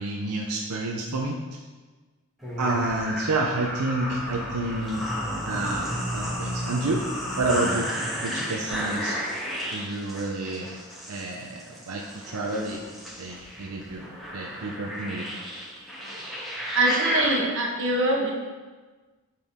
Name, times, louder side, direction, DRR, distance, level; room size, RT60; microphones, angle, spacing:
voice 1, 0.0-1.6 2.6-7.1 7.4-7.9 8.2-9.2 9.7-10.7 11.1-12.8 13.2-14.1 14.3-15.3, right 2 dB, 90° right, 0 dB, 0.6 m, -29 dB
sound 1, 2.4-17.4, equal, ahead, 2.1 m, -32 dB
voice 2, 16.7-18.3, right 1 dB, 60° right, -2 dB, 1.3 m, -23 dB
8.7 x 4.5 x 3.6 m, 1.3 s
head